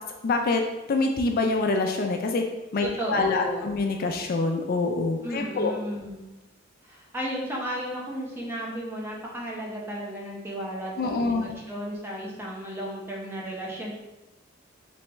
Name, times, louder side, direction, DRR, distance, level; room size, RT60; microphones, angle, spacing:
voice 1, 0.2-2.4 2.7-5.7 11.0-11.6, left 3 dB, 45° left, 3 dB, 0.3 m, -26 dB
voice 2, 2.8-3.8 5.2-6.2 6.8-13.9, equal, 10° right, -3 dB, 0.7 m, -34 dB
3.4 x 3.3 x 3.0 m, 1.0 s
head